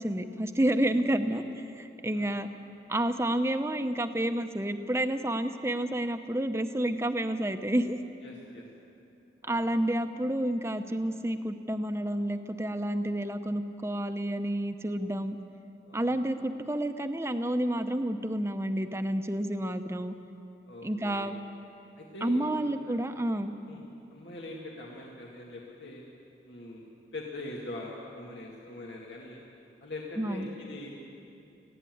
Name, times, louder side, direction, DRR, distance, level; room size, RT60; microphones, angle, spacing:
voice 1, 0.0-1.4 1.8-2.5 2.9-8.0 9.4-15.4 15.9-20.1 20.8-21.3 22.2-23.5 30.2-30.5, right 1 dB, 15° right, 8 dB, 0.7 m, -30 dB
voice 2, 8.2-8.7 9.4-9.7 15.8-16.1 20.7-21.3 22.0-23.4 23.6-23.8 24.1-26.0 26.4-29.4 29.8-30.9, left 2 dB, 85° left, -2 dB, 2.1 m, -43 dB
19.5 x 15.5 x 9.4 m, 2.8 s
head